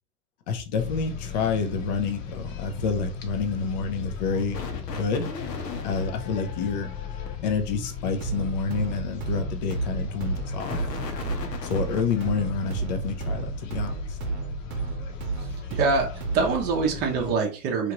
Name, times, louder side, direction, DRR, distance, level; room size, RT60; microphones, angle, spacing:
voice 1, 0.5-5.3 5.8-6.9 7.4-10.8 11.6-14.2, left 5 dB, 30° left, 0.4 m, -28 dB
sound 1, 0.8-17.4, left 6 dB, 55° left, 0.8 m, -37 dB
sound 2, 4.2-7.4 10.2-12.3, left 5 dB, 90° left, 0.8 m, -38 dB
sound 3, 8.2-16.7, right 5 dB, 60° right, 0.8 m, -33 dB
voice 2, 15.4-17.9, right 4 dB, 20° right, 0.6 m, -25 dB
2.9 x 2.4 x 2.9 m
hypercardioid pair, 120°, 47 cm